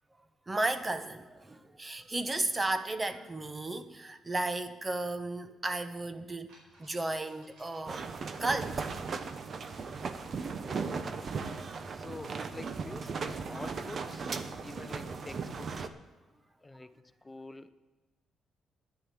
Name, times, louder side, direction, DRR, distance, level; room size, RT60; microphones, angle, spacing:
voice 1, 0.5-6.5 6.8-8.1 8.4-8.9 11.8-11.9 13.2-13.3, right 2 dB, 20° right, 1.0 m, -34 dB
sound 1, 5.9-6.0 6.5-12.2, right 1 dB, 80° right, 5.2 m, -64 dB
sound 2, 7.9-15.9, right 5 dB, 50° right, 0.9 m, -37 dB
voice 2, 10.2-11.0 11.8-14.3 14.6-15.9 16.6-16.9 17.2-17.7, left 2 dB, 20° left, 0.8 m, -47 dB
10.5 x 9.9 x 7.3 m
cardioid pair, 90°, 0 cm